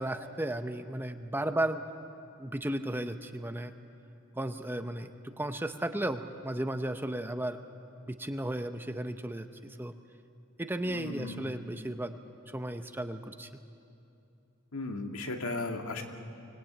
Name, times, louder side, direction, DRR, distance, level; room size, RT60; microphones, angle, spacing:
voice 1, 0.0-1.8 2.4-3.7 4.4-7.6 8.1-9.9 10.6-12.1 12.5-13.5, right 1 dB, 10° right, 8 dB, 0.7 m, -34 dB
voice 2, 10.8-11.4 14.7-16.0, left 2 dB, 85° left, 3 dB, 2.1 m, -36 dB
25.0 x 19.5 x 8.9 m, 2.6 s
head